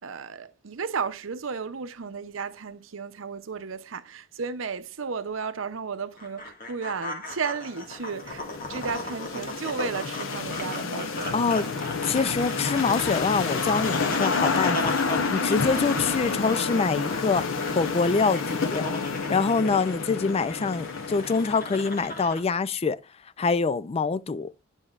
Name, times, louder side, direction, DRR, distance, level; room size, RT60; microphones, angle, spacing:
voice 1, 0.0-11.5, right 5 dB, 80° right, 0.7 m, -34 dB
sound 1, 6.2-22.4, left 1 dB, 45° left, 1.8 m, -37 dB
sound 2, 7.8-22.3, left 4 dB, 85° left, 0.8 m, -30 dB
sound 3, 10.7-21.0, right 1 dB, 5° left, 1.1 m, -48 dB
voice 2, 11.3-11.7 12.0-15.1 15.3-18.9 19.3-23.0 23.4-24.5, left 4 dB, 30° left, 0.4 m, -25 dB
9.8 x 5.3 x 2.4 m
head